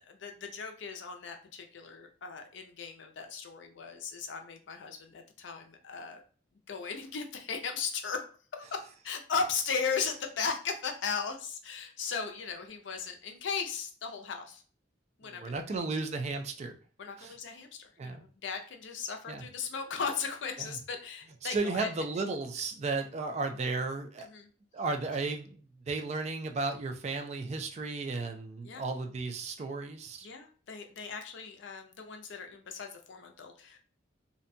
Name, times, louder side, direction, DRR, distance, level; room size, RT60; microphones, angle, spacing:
voice 1, 0.1-6.2 6.7-8.2 8.6-14.6 15.2-15.8 17.0-21.9 24.2-24.5 28.6-28.8 30.2-33.8, left 5 dB, 75° left, 5 dB, 0.5 m, -37 dB
voice 2, 15.2-16.8 17.2-17.3 18.0-18.2 19.3-19.4 20.6-20.7 21.4-24.3 24.7-30.3, right 3 dB, 35° right, 5 dB, 0.3 m, -34 dB
2.6 x 2.1 x 2.5 m, 0.40 s
head